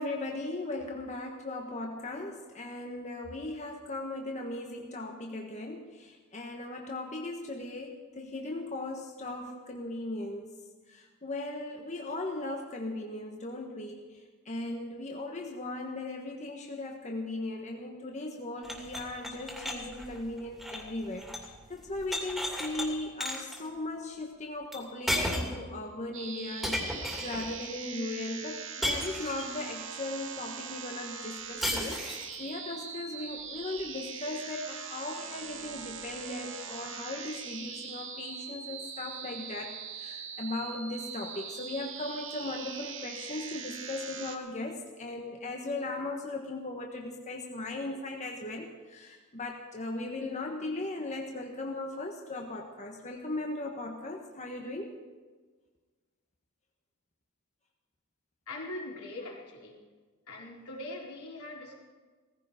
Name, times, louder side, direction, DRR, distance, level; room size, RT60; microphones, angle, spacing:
voice 1, 0.0-10.5 10.9-32.0 32.4-55.0, left 2 dB, 30° left, 1 dB, 1.4 m, -38 dB
sound 1, 18.6-21.5 21.8-22.9 23.2-23.6 24.7-24.8 25.1-25.6 26.6-27.5 28.8-29.6 31.6-32.4, left 1 dB, ahead, 2.7 m, -34 dB
sound 2, 26.1-44.4, right 6 dB, 60° right, 1.7 m, -42 dB
voice 2, 58.5-59.7 60.3-61.8, left 2 dB, 80° left, -2 dB, 4.3 m, -41 dB
17.5 x 15.5 x 5.2 m, 1.4 s
head